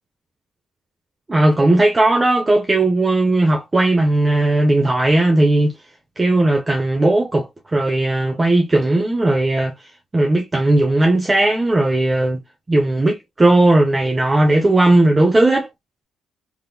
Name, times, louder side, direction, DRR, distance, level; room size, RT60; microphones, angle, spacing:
voice 1, 1.3-5.7 6.2-9.7 10.1-12.4 12.7-15.7, right 2 dB, 20° right, 0.7 m, -16 dB
3.5 x 2.9 x 2.3 m
cardioid pair, 90°, 0 cm